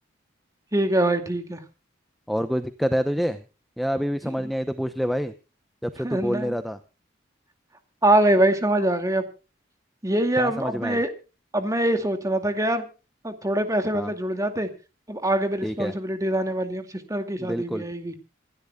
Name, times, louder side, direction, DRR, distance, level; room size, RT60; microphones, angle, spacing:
voice 1, 0.7-1.6 4.4-4.5 6.0-6.5 8.0-9.2 10.0-11.1 11.5-12.9 13.2-14.7 15.1-18.1, right 1 dB, 15° right, 7 dB, 2.4 m, -24 dB
voice 2, 2.3-3.4 3.8-5.3 5.8-6.8 10.4-11.0 13.9-14.1 15.6-15.9 17.4-17.8, equal, ahead, 9 dB, 0.8 m, -27 dB
27.0 x 12.0 x 2.4 m, 0.32 s
head